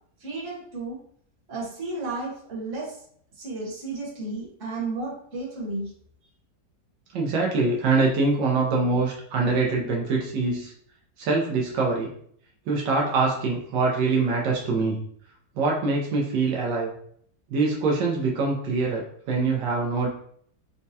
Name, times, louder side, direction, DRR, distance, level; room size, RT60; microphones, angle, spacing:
voice 1, 0.2-1.0 1.5-3.0 3.4-5.9, right 3 dB, 50° right, -4 dB, 1.4 m, -33 dB
voice 2, 7.1-10.7 11.2-12.1 12.7-15.0 15.5-16.9 17.5-20.1, right 3 dB, 80° right, -2 dB, 1.4 m, -24 dB
4.2 x 2.2 x 2.7 m, 0.63 s
omnidirectional pair, 1.9 m